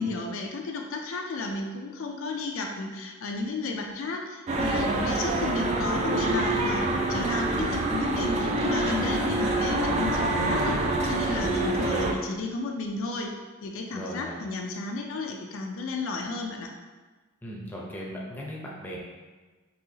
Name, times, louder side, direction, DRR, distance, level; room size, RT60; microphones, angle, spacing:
voice 1, 0.0-13.3 13.6-16.7, left 3 dB, 70° left, 2 dB, 0.4 m, -33 dB
sound 1, 4.5-12.1, right 2 dB, 35° right, 0.3 m, -26 dB
voice 2, 8.9-9.5 13.9-14.4 17.4-19.0, equal, 10° left, -4 dB, 0.6 m, -37 dB
4.1 x 2.7 x 2.8 m, 1.3 s
head